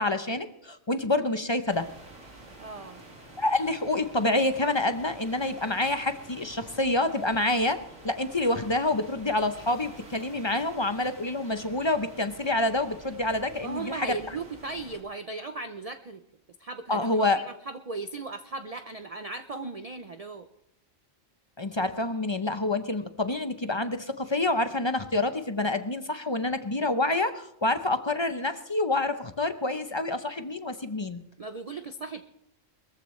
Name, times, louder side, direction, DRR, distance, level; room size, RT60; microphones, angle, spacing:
voice 1, 0.0-1.9 3.4-14.1 16.9-17.4 21.6-31.2, left 2 dB, 30° left, 9 dB, 0.6 m, -27 dB
sound 1, 1.7-15.0, right 1 dB, 85° right, 3.5 m, -49 dB
voice 2, 2.6-3.0 13.6-16.2 16.6-20.5 31.4-32.2, right 3 dB, 40° right, 9 dB, 0.6 m, -37 dB
22.0 x 14.5 x 3.2 m, 0.79 s
omnidirectional pair, 1.4 m